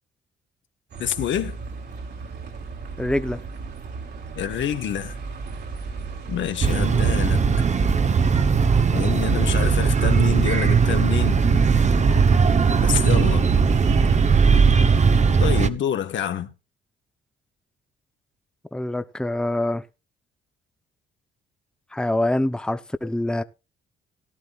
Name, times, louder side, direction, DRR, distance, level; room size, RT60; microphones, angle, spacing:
Bus, 0.9-7.2, right 4 dB, 55° right, 3.3 m, -36 dB
voice 1, 1.0-1.6 4.3-5.2 6.3-7.4 8.9-11.4 12.8-13.5 15.4-16.5, left 10 dB, 70° left, 1.5 m, -27 dB
voice 2, 3.0-3.4 18.7-19.8 21.9-23.4, left 1 dB, 5° left, 0.8 m, -25 dB
sound 1, 6.6-15.7, right 5 dB, 35° right, 1.1 m, -18 dB
17.5 x 11.5 x 2.5 m
cardioid pair, 90°, 20 cm